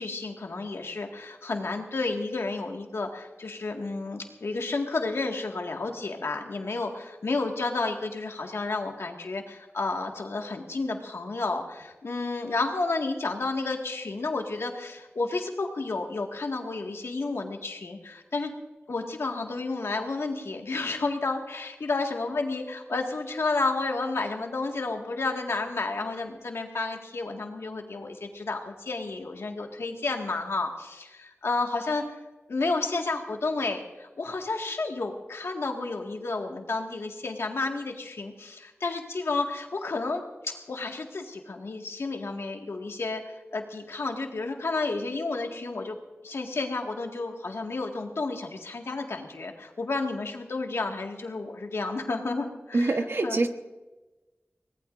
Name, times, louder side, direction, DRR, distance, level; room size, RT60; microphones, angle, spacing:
voice 1, 0.0-18.5 18.9-32.0 32.5-46.0 46.2-53.4, left 3 dB, 85° left, 2 dB, 1.9 m, -31 dB
voice 2, 52.7-53.5, right 2 dB, 65° right, 6 dB, 1.2 m, -25 dB
24.0 x 19.0 x 2.6 m, 1.1 s
wide cardioid pair, 65°, 4 cm